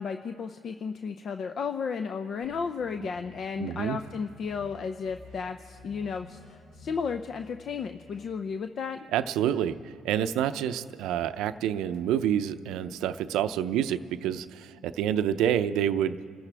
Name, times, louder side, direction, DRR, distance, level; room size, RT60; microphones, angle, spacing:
voice 1, 0.0-9.1, left 5 dB, 50° left, 8 dB, 0.6 m, -33 dB
sound 1, 2.4-3.5 3.9-4.2 4.5-4.8 5.0-8.3, left 2 dB, 70° left, 5.3 m, -51 dB
voice 2, 3.6-4.0 9.1-16.2, right 10 dB, 80° right, 11 dB, 0.6 m, -28 dB
29.5 x 14.0 x 3.4 m, 2.2 s
cardioid pair, 90°, 0 cm